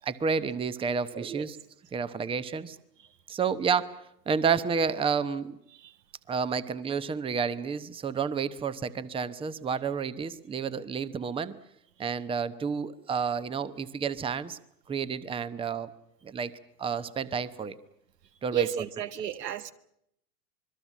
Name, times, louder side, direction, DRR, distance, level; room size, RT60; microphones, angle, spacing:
voice 1, 0.0-1.6 1.9-2.8 3.3-3.9 4.3-5.6 6.3-11.6 12.0-14.6 14.9-15.9 16.2-16.5 16.8-17.8 18.4-18.9, right 6 dB, 10° right, 0.9 m, -30 dB
voice 2, 1.1-1.5 5.7-6.0 18.5-19.7, right 10 dB, 85° right, 1.7 m, -33 dB
26.0 x 21.5 x 7.3 m
hypercardioid pair, 120°, 48 cm